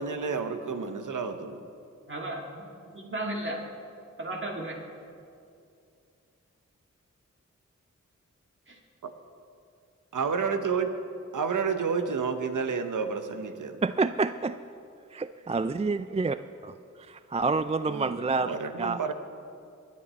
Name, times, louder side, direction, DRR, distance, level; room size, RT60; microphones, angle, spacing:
voice 1, 0.0-1.6 9.0-9.1 10.1-10.9 11.3-13.8 17.9-19.1, right 5 dB, 85° right, 8 dB, 0.9 m, -30 dB
voice 2, 2.1-2.6 2.9-3.6 4.2-4.8 8.7-8.8 16.1-16.2, right 1 dB, 40° right, -1 dB, 2.0 m, -34 dB
voice 3, 13.8-14.6 15.1-16.7 17.1-19.0, right 3 dB, 20° right, 12 dB, 0.3 m, -28 dB
21.5 x 8.6 x 4.2 m, 2.4 s
cardioid pair, 45°, 30 cm